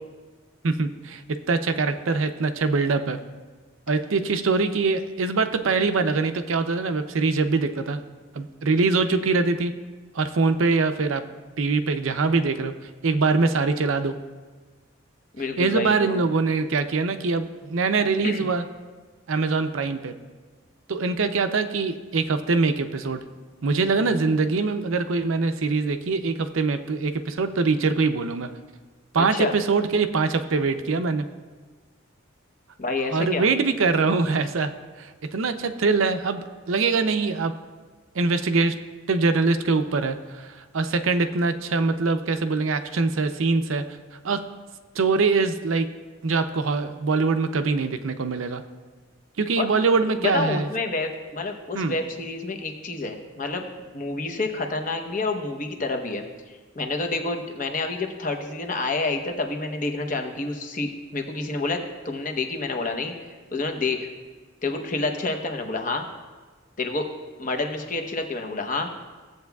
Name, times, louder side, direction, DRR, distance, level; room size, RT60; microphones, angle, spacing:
voice 1, 0.6-3.2 3.9-8.0 8.3-9.7 10.1-11.2 11.6-12.7 13.0-14.2 15.6-18.6 19.3-20.1 20.9-23.2 23.6-28.5 29.1-31.3 33.1-37.6 38.1-38.8 39.1-43.9 44.2-44.4 45.0-45.9 46.2-48.6 49.4-50.7 51.7-52.0, right 4 dB, 80° right, 9 dB, 0.5 m, -23 dB
voice 2, 15.4-16.2 18.2-18.5 29.2-29.5 32.8-33.5 49.6-49.8 50.2-53.6 53.9-56.2 56.8-63.1 63.5-64.1 64.6-66.1 66.8-67.1 67.4-68.9, left 3 dB, 40° left, 4 dB, 0.9 m, -28 dB
15.5 x 7.9 x 2.3 m, 1.4 s
head